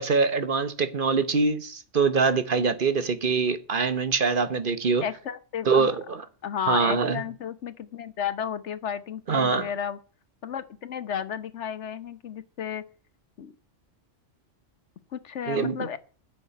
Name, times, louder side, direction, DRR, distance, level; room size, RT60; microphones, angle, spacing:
voice 1, 0.0-5.0 5.7-6.2 6.7-7.2 9.3-9.7 15.5-15.8, right 4 dB, 50° right, 1.1 m, -24 dB
voice 2, 5.0-6.0 6.4-10.0 10.4-12.8 13.4-13.5 15.1-16.0, left 8 dB, 70° left, 1.2 m, -33 dB
10.0 x 6.9 x 9.1 m
omnidirectional pair, 1.2 m